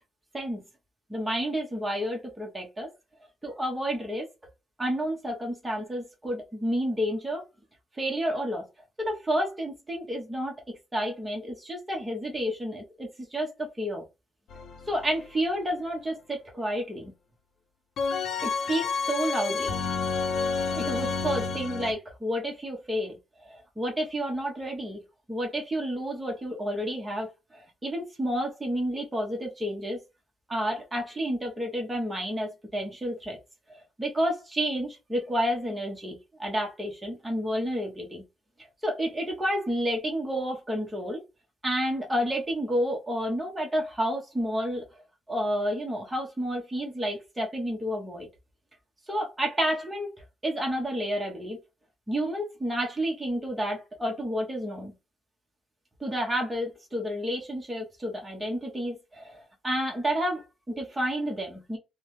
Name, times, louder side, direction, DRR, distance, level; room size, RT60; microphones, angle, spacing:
voice 1, 1.1-2.9 3.4-4.3 4.8-7.4 8.0-8.7 9.0-10.5 10.9-14.1 14.9-17.1 18.4-19.8 20.7-25.0 25.3-30.0 30.5-33.4 33.7-38.2 38.8-41.2 41.6-44.8 45.3-48.3 49.1-50.1 50.4-51.6 52.1-54.9 56.0-61.8, equal, 10° right, 0.9 m, -30 dB
sound 1, 14.5-15.3 18.0-21.9, left 5 dB, 70° left, 0.6 m, -29 dB
3.1 x 2.1 x 3.1 m
wide cardioid pair, 175°, 0 cm